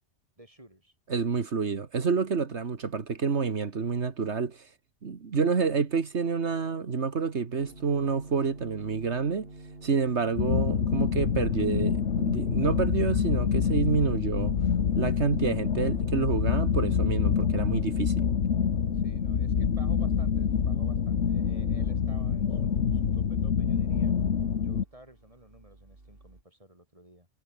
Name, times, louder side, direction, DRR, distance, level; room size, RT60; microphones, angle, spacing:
voice 1, 0.4-1.0 18.9-24.1 24.6-27.3, right 1 dB, 30° right, 6.9 m, -53 dB
voice 2, 1.1-4.7 5.0-9.5 9.8-14.5 15.0-18.2, right 5 dB, 75° right, 2.0 m, -28 dB
sound 1, 7.6-15.2 18.6-26.4, right 2 dB, 55° right, 3.6 m, -50 dB
sound 2, 10.4-24.8, left 7 dB, 90° left, 1.6 m, -26 dB
omnidirectional pair, 1.2 m